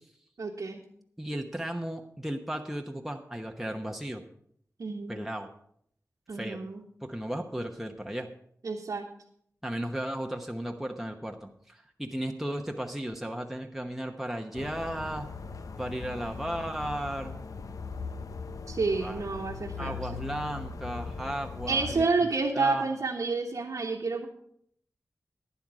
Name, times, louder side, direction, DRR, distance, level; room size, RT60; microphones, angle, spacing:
voice 1, 0.4-0.8 4.8-5.1 6.3-6.8 8.6-9.1 18.7-20.0 21.7-24.3, right 4 dB, 75° right, -2 dB, 1.2 m, -29 dB
voice 2, 1.2-4.2 5.1-5.5 6.3-6.6 7.0-8.3 9.6-15.3 15.8-17.3 19.0-19.2 19.8-22.1 22.5-22.9, right 1 dB, 5° right, 3 dB, 1.0 m, -35 dB
sound 1, 14.5-22.0, left 5 dB, 75° left, 0.7 m, -40 dB
11.5 x 9.6 x 4.9 m, 0.67 s
wide cardioid pair, 65°, 6 cm